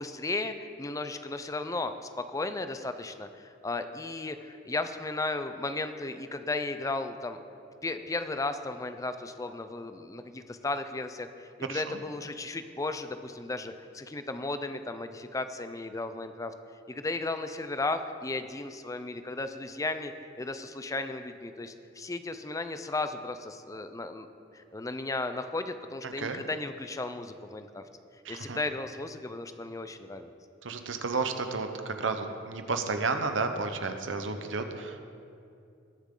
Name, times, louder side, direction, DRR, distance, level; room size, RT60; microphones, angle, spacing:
voice 1, 0.0-7.4 7.8-16.5 16.9-27.8 28.3-30.3, left 2 dB, 15° left, 9 dB, 0.5 m, -35 dB
voice 2, 26.0-26.4 28.2-28.6 30.6-35.0, right 4 dB, 80° right, 7 dB, 0.9 m, -32 dB
20.0 x 7.1 x 3.8 m, 2.5 s
head